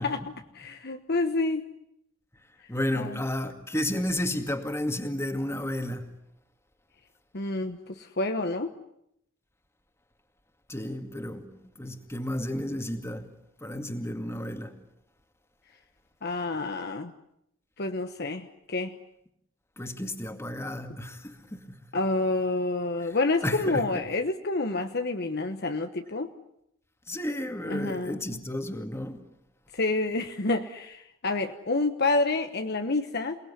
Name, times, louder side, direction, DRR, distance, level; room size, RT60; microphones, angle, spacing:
voice 1, 0.0-1.7 2.9-3.2 7.3-8.7 16.2-17.1 17.8-19.0 21.9-26.3 27.7-28.4 29.7-33.4, left 2 dB, 50° left, 1.2 m, -28 dB
voice 2, 2.7-6.1 10.7-11.4 11.8-13.3 13.6-14.7 19.8-21.8 23.1-23.2 23.4-24.1 27.1-29.2, left 1 dB, 15° left, 2.2 m, -32 dB
28.5 x 19.0 x 9.8 m
head